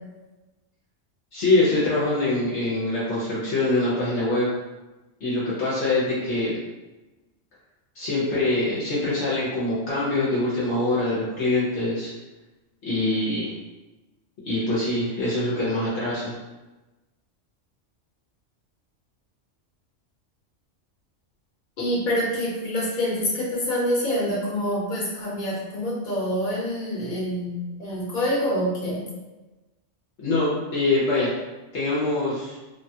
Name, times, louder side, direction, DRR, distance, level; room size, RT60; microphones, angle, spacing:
voice 1, 1.3-4.5 5.2-6.6 7.9-12.1 12.8-13.5 14.5-16.3 30.2-31.3 31.7-32.6, left 2 dB, 65° left, -8 dB, 1.0 m, -24 dB
voice 2, 21.8-29.0, equal, 45° left, -6 dB, 1.1 m, -26 dB
3.2 x 2.2 x 2.7 m, 1.1 s
omnidirectional pair, 1.3 m